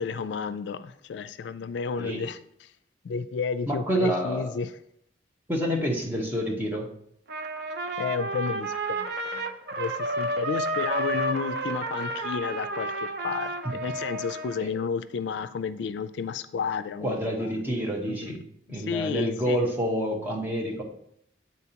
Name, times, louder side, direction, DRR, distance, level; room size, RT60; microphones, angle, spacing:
voice 1, 0.0-2.7 3.0-4.7 8.0-9.5 9.8-17.1 18.1-18.4 18.7-19.7, left 5 dB, 75° left, 12 dB, 0.3 m, -32 dB
voice 2, 3.7-4.5 5.5-6.9 13.6-13.7 14.6-14.7 17.0-18.4 18.7-20.8, equal, 10° right, -2 dB, 1.0 m, -28 dB
Trumpet, 7.3-14.6, right 2 dB, 60° right, 0.5 m, -31 dB
8.3 x 4.1 x 2.8 m, 0.71 s
head